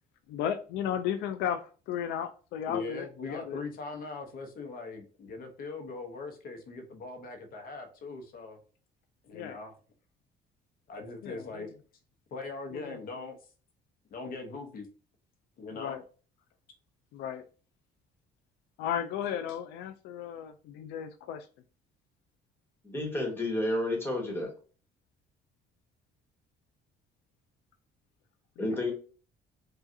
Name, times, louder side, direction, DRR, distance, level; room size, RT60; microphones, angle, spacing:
voice 1, 0.3-3.6 9.3-9.6 11.2-11.7 12.7-13.0 15.7-16.0 17.1-17.4 18.8-21.5 28.7-28.8, left 9 dB, 85° left, 0.4 m, -35 dB
voice 2, 2.7-8.6 9.2-9.8 10.9-11.7 12.3-13.4 14.1-14.9 15.6-16.0, left 3 dB, 60° left, 0.9 m, -40 dB
voice 3, 22.8-24.5 28.6-28.9, left 1 dB, 15° left, 1.5 m, -30 dB
4.8 x 2.4 x 2.7 m
cardioid pair, 110°, 17 cm